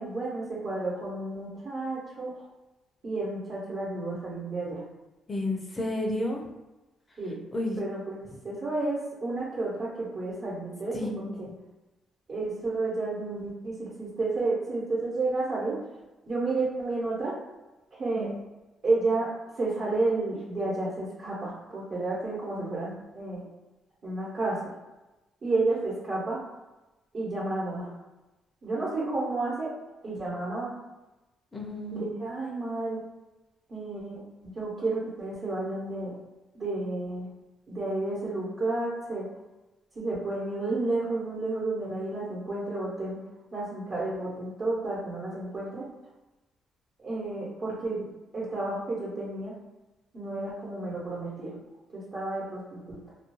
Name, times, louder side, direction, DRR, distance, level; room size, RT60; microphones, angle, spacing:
voice 1, 0.0-2.3 3.0-4.8 7.2-7.4 7.8-8.2 8.4-11.5 12.3-15.8 16.3-17.3 17.9-18.3 18.8-19.3 19.5-23.4 24.0-24.6 25.4-26.4 27.1-27.9 28.6-29.7 30.0-30.7 31.9-33.0 33.7-34.2 34.5-36.2 36.5-37.3 37.7-39.2 39.9-43.2 43.5-45.9 47.0-48.1 48.3-49.5 50.1-51.6 51.9-53.0, right 2 dB, 50° right, -8 dB, 1.0 m, -31 dB
voice 2, 5.3-6.4 7.5-7.8 10.9-11.5 18.1-18.4 31.5-32.1, left 1 dB, 25° left, -1 dB, 0.5 m, -31 dB
2.3 x 2.2 x 3.0 m, 1.0 s
cardioid pair, 90°, 0 cm